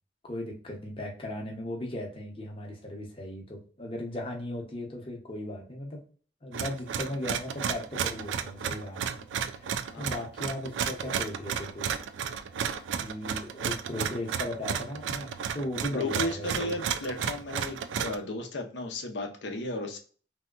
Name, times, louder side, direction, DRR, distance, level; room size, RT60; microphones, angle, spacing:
voice 1, 0.2-6.0 6.4-11.9 13.0-16.8, left 1 dB, 30° left, 0 dB, 0.8 m, -37 dB
sound 1, 6.5-18.2, right 7 dB, 85° right, 0.3 m, -33 dB
voice 2, 9.9-10.3 15.9-20.0, left 2 dB, 75° left, 4 dB, 0.7 m, -34 dB
3.2 x 2.7 x 2.4 m, 0.41 s
head